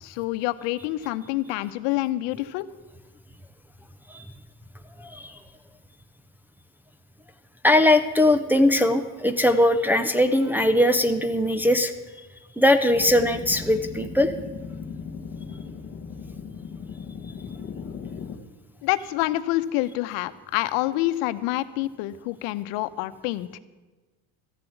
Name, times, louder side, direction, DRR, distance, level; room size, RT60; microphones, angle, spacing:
voice 1, 0.0-2.7 18.8-23.6, left 16 dB, 85° left, 13 dB, 0.9 m, -27 dB
voice 2, 5.0-5.4 7.6-11.9 12.6-14.3, left 1 dB, 5° right, 5 dB, 0.4 m, -20 dB
sound 1, 12.9-18.4, left 6 dB, 25° left, 0.9 m, -37 dB
14.0 x 7.0 x 9.3 m, 1.2 s
cardioid pair, 150°, 42 cm